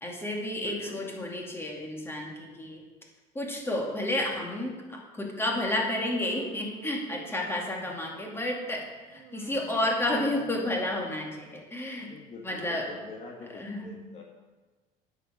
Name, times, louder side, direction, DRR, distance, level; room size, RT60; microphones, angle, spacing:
voice 1, 0.0-2.8 3.3-12.1 12.4-12.9 13.5-14.0, left 1 dB, 15° left, 0 dB, 2.3 m, -31 dB
voice 2, 0.6-1.1 12.1-14.2, left 4 dB, 45° left, 0 dB, 1.7 m, -45 dB
Human voice, 6.0-8.3 9.1-11.0, right 7 dB, 75° right, 1.3 m, -49 dB
8.9 x 6.9 x 6.4 m, 1.3 s
cardioid pair, 110°, 16 cm